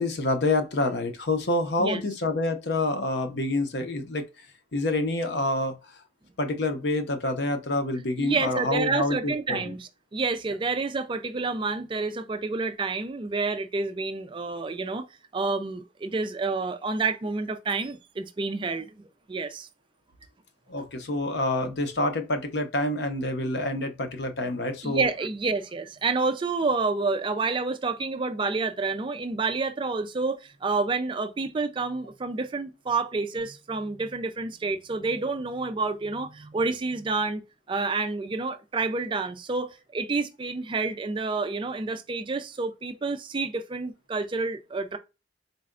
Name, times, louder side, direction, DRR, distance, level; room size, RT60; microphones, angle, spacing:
voice 1, 0.0-4.5 4.7-5.9 6.4-9.7 20.7-25.1, left 2 dB, 65° left, 0.7 m, -27 dB
voice 2, 8.2-15.1 15.3-19.7 24.8-37.4 37.7-45.0, right 3 dB, 25° right, 0.4 m, -29 dB
4.1 x 2.2 x 3.7 m
head